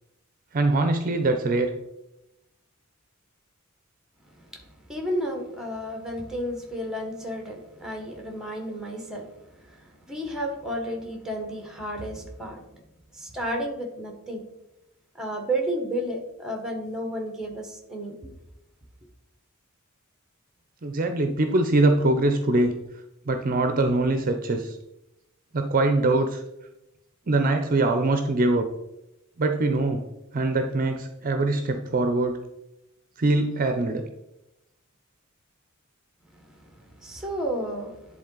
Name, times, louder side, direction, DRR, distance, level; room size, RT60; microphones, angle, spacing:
voice 1, 0.5-1.7 20.8-22.7 23.3-24.8 25.5-26.4 27.3-28.7 29.4-30.0 30.3-32.4 33.2-34.0, right 2 dB, 40° right, 6 dB, 0.6 m, -23 dB
voice 2, 4.4-12.6 13.1-14.4 15.1-18.3 36.3-36.4 36.7-38.2, equal, 5° right, 2 dB, 1.2 m, -32 dB
10.5 x 3.8 x 3.9 m, 0.89 s
head